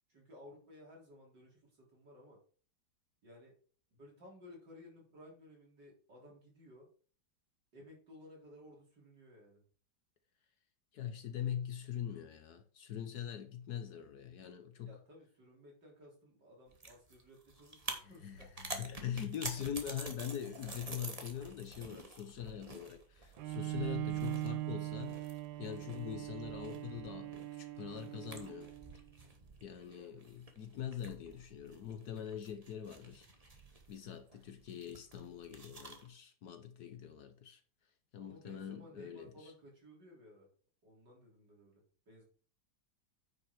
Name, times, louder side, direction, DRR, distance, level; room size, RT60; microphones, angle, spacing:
voice 1, 0.1-2.4 3.2-3.5 3.9-6.9 7.7-9.6 14.8-18.7 29.8-30.2 38.2-40.5 40.8-42.2, left 1 dB, 65° right, 4.2 m, -57 dB
voice 2, 10.9-15.0 18.0-25.2 25.6-28.7 29.6-33.3 33.9-37.6 38.1-39.5, left 9 dB, 65° left, 1.3 m, -43 dB
sound 1, 16.7-36.1, right 2 dB, 20° right, 1.3 m, -49 dB
Bowed string instrument, 23.4-29.0, right 17 dB, 85° right, 1.3 m, -41 dB
9.4 x 5.9 x 4.7 m
omnidirectional pair, 2.0 m